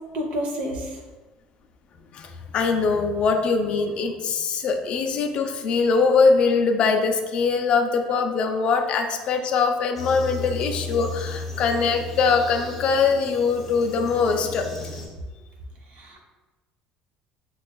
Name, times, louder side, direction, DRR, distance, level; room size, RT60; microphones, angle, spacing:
voice 1, 0.1-1.0 15.9-16.2, equal, 55° right, 1 dB, 0.7 m, -29 dB
voice 2, 2.1-14.7, left 5 dB, 45° left, 5 dB, 0.4 m, -22 dB
sound 1, 10.0-15.1, left 2 dB, 5° left, 0.6 m, -35 dB
5.9 x 2.3 x 2.2 m, 1.2 s
cardioid pair, 150°, 3 cm